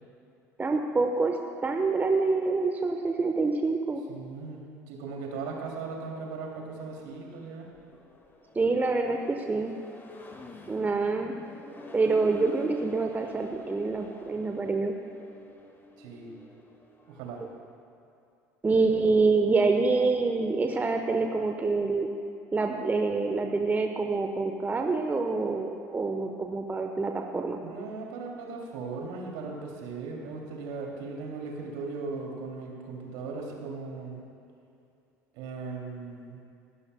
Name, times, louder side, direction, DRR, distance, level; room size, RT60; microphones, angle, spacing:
voice 1, 0.6-1.4 1.6-4.0 8.5-9.7 10.7-11.4 11.9-14.9 18.6-22.1 22.5-27.7, right 3 dB, 20° right, 3 dB, 1.0 m, -26 dB
voice 2, 4.1-7.7 16.0-16.3 17.1-17.4 27.6-34.2 35.3-36.4, right 4 dB, 65° right, -1 dB, 2.7 m, -38 dB
Accelerating revving vroom, 6.8-17.2, left 1 dB, 25° left, 1.9 m, -47 dB
25.5 x 12.5 x 2.2 m, 2.6 s
figure-of-eight pair, 65°, 9 cm